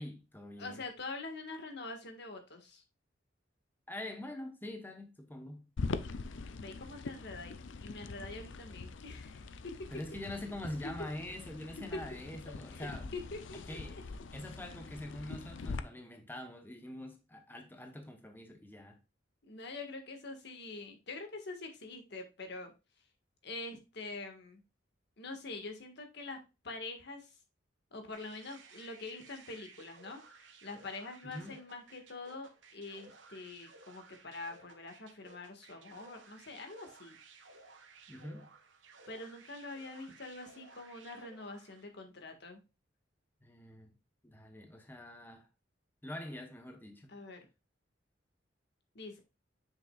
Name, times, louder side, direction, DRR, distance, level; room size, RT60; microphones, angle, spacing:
voice 1, 0.0-0.8 3.9-5.7 9.9-13.1 13.7-19.0 31.2-31.6 38.1-38.5 43.4-44.0 44.2-45.5 46.0-47.1, left 1 dB, 10° left, 0.9 m, -45 dB
voice 2, 0.6-2.8 6.5-9.7 12.7-13.8 19.4-22.7 23.4-24.6 25.2-26.4 26.6-27.3 27.9-37.2 39.1-42.6 47.1-47.4 48.9-49.2, left 3 dB, 65° left, 1.6 m, -45 dB
sound 1, 5.8-15.8, left 3 dB, 85° left, 0.5 m, -43 dB
sound 2, 28.1-41.9, right 4 dB, 90° right, 1.3 m, -58 dB
7.5 x 6.2 x 2.3 m
head